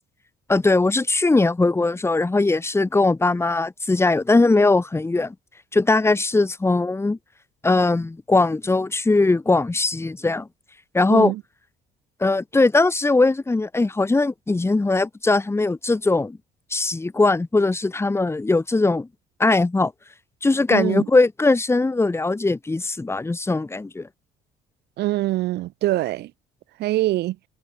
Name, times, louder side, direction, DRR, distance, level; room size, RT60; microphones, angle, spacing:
voice 1, 0.5-5.3 5.7-7.2 7.6-10.5 10.9-11.3 12.2-16.4 16.7-19.1 19.4-19.9 20.4-24.1, left 3 dB, 15° left, 3.7 m, -20 dB
voice 2, 11.1-11.4 20.7-21.1 25.0-26.3 26.8-27.4, right 16 dB, 80° right, 5.7 m, -23 dB
cardioid pair, 110°, 17 cm